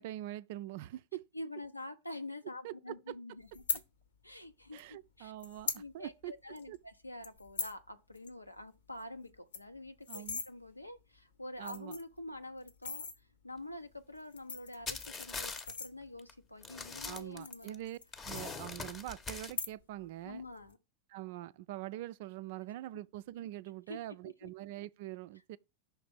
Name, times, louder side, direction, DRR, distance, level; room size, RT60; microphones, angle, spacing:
voice 1, 0.0-1.3 2.6-3.2 3.7-3.8 4.7-6.3 6.7-6.8 10.1-10.4 11.6-12.0 17.0-18.0 18.2-20.4 21.1-25.6, right 15 dB, 50° right, 0.3 m, -44 dB
voice 2, 1.3-3.6 4.2-5.3 5.8-13.1 13.4-15.5 15.8-17.9 20.2-20.8 23.9-24.0 24.4-24.5, left 1 dB, 85° left, 0.7 m, -46 dB
sound 1, 3.5-3.8 4.8-4.9 5.4-5.8 6.2-6.3 6.6-6.8 7.2-7.8 8.2-8.3 8.6-8.7 9.0-9.1 9.3-10.5 11.2-11.3 11.6-12.2 12.7-13.2 14.2-16.3 17.0-18.1 18.4-19.0 19.4-20.0 20.3-20.7, left 5 dB, 65° left, 1.0 m, -40 dB
sound 2, 14.9-15.7 16.2-16.3 16.6-17.7 18.1-19.5, left 4 dB, 20° left, 0.8 m, -42 dB
5.8 x 3.3 x 5.8 m
figure-of-eight pair, 90°, 0 cm